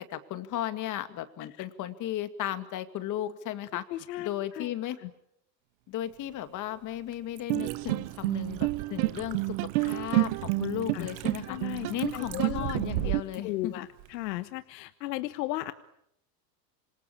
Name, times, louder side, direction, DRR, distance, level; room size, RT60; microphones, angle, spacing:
voice 1, 0.0-3.8 4.2-5.0 5.9-11.6 11.9-13.9, left 12 dB, 35° left, 11 dB, 2.3 m, -35 dB
voice 2, 3.9-4.7 5.0-5.1 10.9-11.1 11.4-13.1 13.4-15.7, left 17 dB, 75° left, 12 dB, 1.4 m, -36 dB
Liquid, 5.9-14.4, right 15 dB, 80° right, 2.5 m, -52 dB
sound 1, 7.5-13.2, right 21 dB, 60° right, 1.2 m, -29 dB
27.5 x 25.0 x 8.7 m, 0.76 s
supercardioid pair, 140°, 49 cm